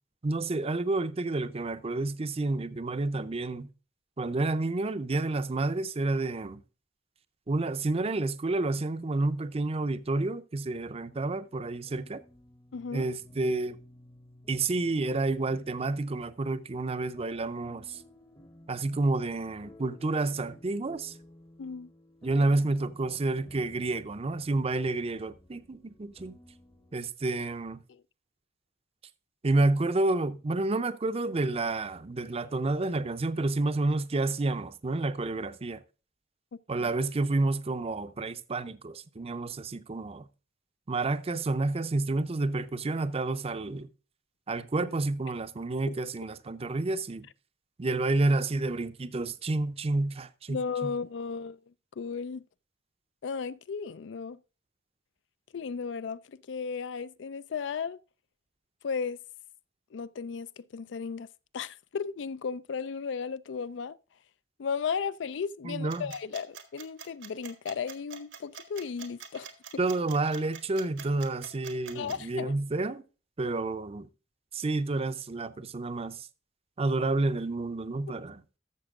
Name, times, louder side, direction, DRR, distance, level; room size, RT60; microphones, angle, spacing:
voice 1, 0.2-3.7 4.2-6.6 7.5-12.2 12.9-13.8 14.5-18.0 18.7-21.2 22.2-26.4 26.9-27.8 29.4-35.8 36.7-40.3 40.9-43.9 44.5-47.3 47.8-50.9 65.6-66.1 69.8-73.0 73.4-74.1 74.5-76.3 76.8-78.4, right 2 dB, 35° right, 0.6 m, -29 dB
sound 1, 11.8-27.0, left 1 dB, 20° left, 0.8 m, -55 dB
voice 2, 12.7-13.1 21.6-21.9 27.9-28.0 36.5-36.9 50.5-51.6 52.0-52.4 53.2-54.4 55.5-58.0 58.8-59.2 59.9-61.3 61.5-64.0 64.6-69.5 71.9-72.5, left 6 dB, 70° left, 0.4 m, -35 dB
sound 2, 65.9-72.2, right 7 dB, 90° right, 1.5 m, -44 dB
13.0 x 6.8 x 3.6 m
head